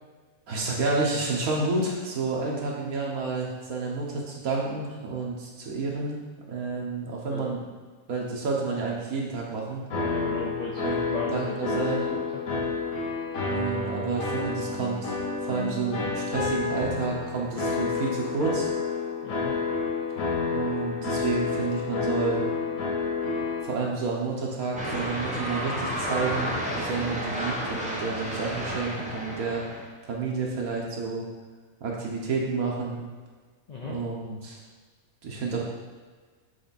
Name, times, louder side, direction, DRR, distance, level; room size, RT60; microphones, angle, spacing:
voice 1, 0.5-6.2 6.5-7.6 8.1-9.8 10.8-12.0 13.3-15.1 15.4-18.7 20.4-22.4 23.6-29.6 30.0-31.2 31.8-33.0 33.8-34.6 35.2-35.7, right 4 dB, 80° right, -2 dB, 1.6 m, -30 dB
sound 1, 9.9-23.6, left 4 dB, 85° left, 1.5 m, -29 dB
voice 2, 9.9-11.8 12.1-12.7 19.2-19.6 33.7-34.0, left 3 dB, 55° left, -2 dB, 0.4 m, -37 dB
sound 2, 24.8-29.9, equal, 5° right, 0.8 m, -31 dB
7.1 x 3.4 x 4.1 m, 1.5 s
omnidirectional pair, 1.5 m